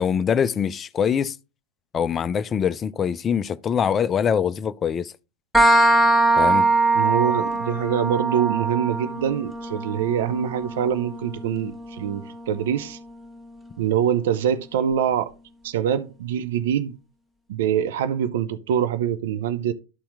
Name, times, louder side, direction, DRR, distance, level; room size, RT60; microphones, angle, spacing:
voice 1, 0.0-1.4 1.9-5.1 6.4-6.7, left 7 dB, 25° left, 0.4 m, -23 dB
sound 1, 5.5-13.0, right 2 dB, 5° right, 1.2 m, -22 dB
voice 2, 6.9-13.0 13.8-15.3 15.6-16.9 17.5-19.7, right 9 dB, 55° right, 0.5 m, -24 dB
12.5 x 4.2 x 3.6 m
figure-of-eight pair, 90°, 0 cm